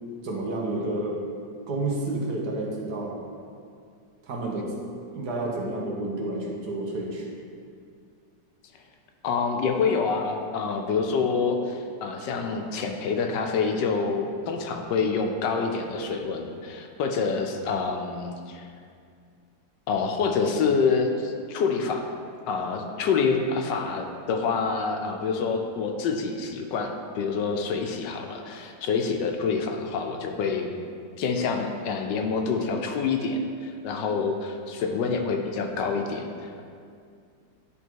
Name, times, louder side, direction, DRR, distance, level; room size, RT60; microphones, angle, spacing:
voice 1, 0.2-1.2 1.7-3.2 4.2-4.7 5.1-7.4, right 2 dB, 65° right, -2 dB, 1.5 m, -30 dB
voice 2, 9.2-18.7 19.9-22.0 22.5-30.7 31.2-36.6, left 5 dB, 75° left, 4 dB, 1.3 m, -27 dB
10.0 x 3.6 x 4.5 m, 2.3 s
omnidirectional pair, 2.0 m